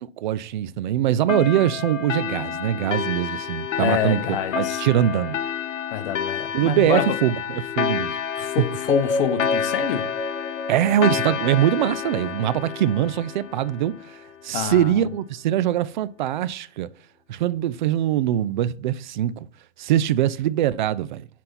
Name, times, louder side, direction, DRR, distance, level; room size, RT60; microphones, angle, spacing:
voice 1, 0.0-4.2 4.6-5.4 6.5-8.5 10.7-16.9 17.3-19.5 19.8-21.3, right 11 dB, 40° right, 0.4 m, -23 dB
sound 1, 1.3-14.4, left 8 dB, 85° left, 0.7 m, -29 dB
voice 2, 3.8-4.8 5.9-7.0 8.4-10.1 14.5-15.1, left 9 dB, 50° left, 1.2 m, -27 dB
sound 2, 8.9-13.0, left 2 dB, 10° left, 3.2 m, -29 dB
9.7 x 4.2 x 4.0 m
hypercardioid pair, 135°, 37 cm